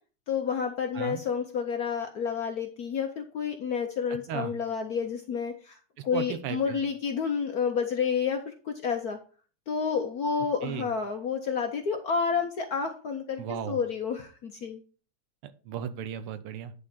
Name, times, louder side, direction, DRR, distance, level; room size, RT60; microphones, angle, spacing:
voice 1, 0.3-5.8 6.0-9.2 9.7-14.8, left 6 dB, 65° left, 5 dB, 0.9 m, -30 dB
voice 2, 6.0-6.8 10.6-10.9 13.4-13.8 15.4-16.7, right 9 dB, 85° right, 12 dB, 1.7 m, -35 dB
9.8 x 3.7 x 5.9 m, 0.39 s
omnidirectional pair, 2.4 m